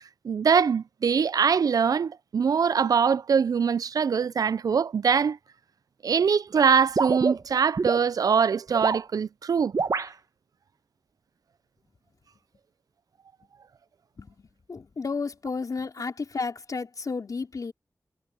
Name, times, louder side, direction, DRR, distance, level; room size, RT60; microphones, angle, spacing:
voice 1, 0.2-5.4 6.0-9.7, right 6 dB, 90° right, 0.3 m, -23 dB
sound 1, 7.0-8.0 8.7-9.1 9.7-10.1, right 4 dB, 75° right, 1.3 m, -26 dB
voice 2, 14.2-17.7, left 4 dB, 75° left, 4.4 m, -32 dB
wide cardioid pair, 85°, 6 cm